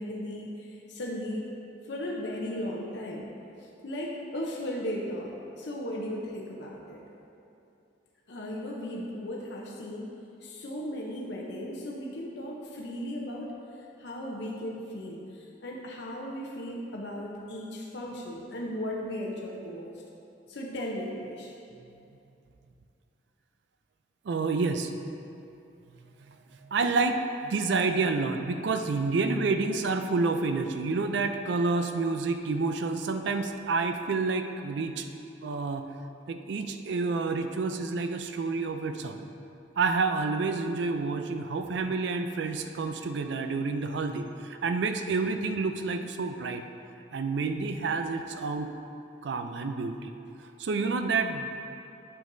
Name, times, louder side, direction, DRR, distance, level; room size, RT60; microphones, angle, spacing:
voice 1, 0.0-1.5 1.9-3.3 3.8-7.0 8.3-10.1 10.4-13.5 14.0-19.9 20.5-21.5, left 1 dB, 65° left, -2 dB, 0.7 m, -36 dB
voice 2, 24.3-24.9 26.7-35.1 35.4-35.8 36.3-39.2 39.8-46.6 47.1-48.7 49.2-50.1 50.6-51.5, right 4 dB, 70° right, 7 dB, 0.4 m, -29 dB
9.2 x 6.9 x 2.6 m, 2.7 s
head